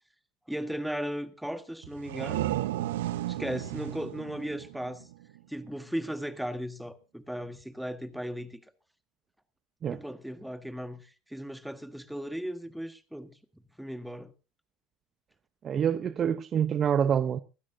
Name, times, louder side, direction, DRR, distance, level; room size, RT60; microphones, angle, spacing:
voice 1, 0.5-2.5 3.3-5.1 5.5-8.6 9.9-13.3 13.8-14.3, equal, 5° right, 1.7 m, -36 dB
sound 1, 1.8-5.4, right 14 dB, 80° right, 0.8 m, -34 dB
voice 2, 15.6-17.4, right 8 dB, 40° right, 0.8 m, -26 dB
24.0 x 12.5 x 2.7 m
hypercardioid pair, 80°, 0 cm